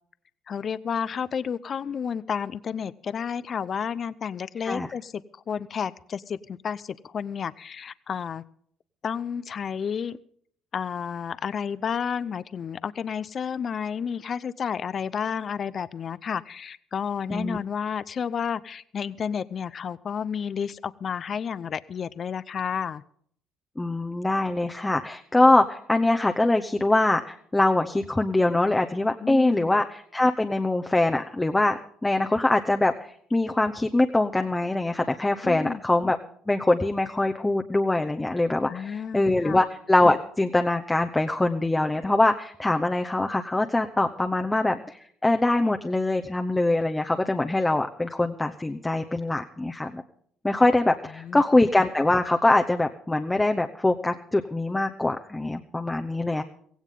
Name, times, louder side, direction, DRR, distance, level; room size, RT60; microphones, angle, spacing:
voice 1, 0.5-8.4 9.0-10.2 10.7-23.0 29.2-29.7 35.4-35.8 38.6-39.6 51.2-51.4, left 7 dB, 45° left, 17 dB, 0.6 m, -31 dB
voice 2, 23.8-36.2 36.5-50.0 50.4-56.4, left 2 dB, 15° left, 5 dB, 0.9 m, -23 dB
16.5 x 16.0 x 3.8 m, 0.62 s
cardioid pair, 90°, 0 cm